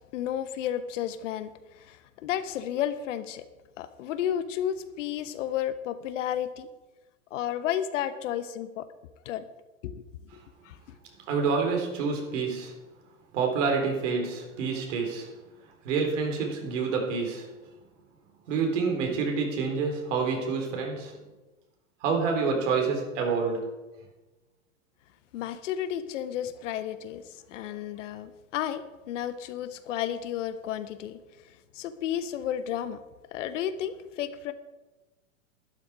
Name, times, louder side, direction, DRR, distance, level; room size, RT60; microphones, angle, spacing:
voice 1, 0.1-3.4 3.8-6.7 7.3-8.9 9.2-9.5 9.8-10.0 10.3-10.8 25.3-27.2 27.5-31.2 31.7-33.0 33.3-34.5, left 10 dB, 60° left, 12 dB, 1.2 m, -32 dB
voice 2, 11.3-12.7 13.3-15.3 15.8-17.5 18.5-21.2 22.0-23.7, right 5 dB, 60° right, 2 dB, 4.0 m, -28 dB
12.0 x 11.5 x 4.9 m, 1.1 s
hypercardioid pair, 110°, 42 cm